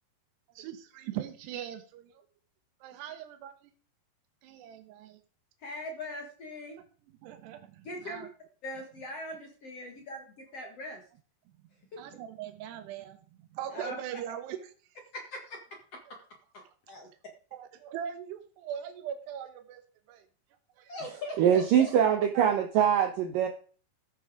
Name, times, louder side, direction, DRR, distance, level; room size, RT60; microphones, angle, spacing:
voice 1, 0.6-2.1 2.8-3.5 4.4-5.2 7.2-8.3 12.0-14.7 17.5-19.8 20.1-20.2 20.8-20.9 22.1-22.5, right 10 dB, 90° right, 3.2 m, -40 dB
voice 2, 5.6-6.8 7.8-8.3 8.6-11.0 11.9-12.0 13.7-14.0 15.1-15.6 15.9-16.0 16.5-17.1 20.9-21.6, left 1 dB, 50° left, 2.1 m, -41 dB
voice 3, 21.4-23.5, right 9 dB, 70° right, 2.3 m, -23 dB
14.5 x 7.7 x 4.9 m
omnidirectional pair, 4.7 m